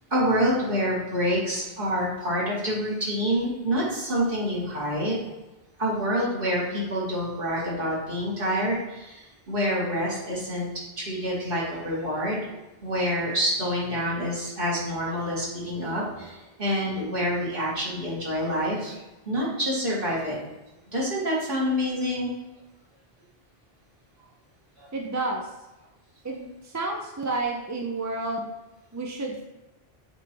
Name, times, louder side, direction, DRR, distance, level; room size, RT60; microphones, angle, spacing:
voice 1, 0.1-5.2 5.8-10.7 11.0-12.5 12.8-19.0 19.3-20.4 20.9-22.3 24.8-24.9, equal, 55° right, -6 dB, 2.2 m, -27 dB
voice 2, 24.9-25.5 26.2-28.5 28.9-29.4, right 2 dB, 25° right, 1 dB, 0.4 m, -30 dB
7.8 x 2.7 x 4.5 m, 1.0 s
omnidirectional pair, 1.1 m